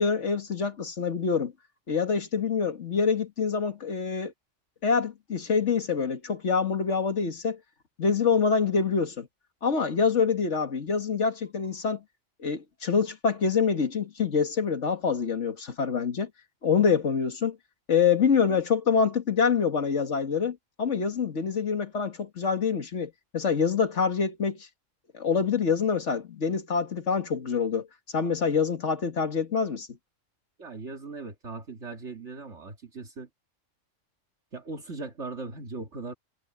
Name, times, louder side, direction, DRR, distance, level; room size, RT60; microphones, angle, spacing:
voice 1, 0.0-1.5 1.9-4.3 4.8-7.6 8.0-9.3 9.6-12.0 12.4-16.3 16.6-17.6 17.9-24.7 25.1-27.9 28.1-29.9, left 5 dB, 70° left, 2.0 m, -26 dB
voice 2, 30.6-33.3 34.5-36.1, right 3 dB, 65° right, 2.5 m, -39 dB
omnidirectional pair, 1.3 m